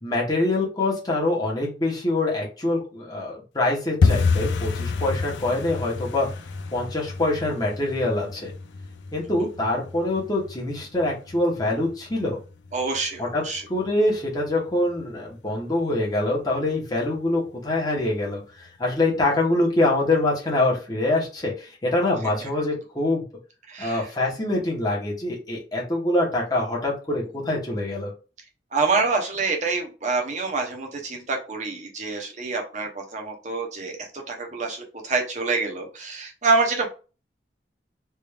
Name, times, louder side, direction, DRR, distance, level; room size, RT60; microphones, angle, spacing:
voice 1, 0.0-6.3 6.7-8.5 9.1-12.4 13.2-13.4 13.7-23.2 23.8-28.1, left 2 dB, 20° left, -3 dB, 1.1 m, -25 dB
sound 1, 4.0-14.7 15.0-15.7 15.9-16.2 16.5-16.9 17.2-17.3 17.8-18.3 18.7-18.8 19.3-19.4, left 4 dB, 90° left, 0.4 m, -29 dB
voice 2, 12.7-13.6 22.4-22.5 23.7-24.1 28.7-36.9, right 3 dB, 40° right, 1 dB, 0.9 m, -26 dB
3.4 x 2.6 x 3.3 m, 0.34 s
head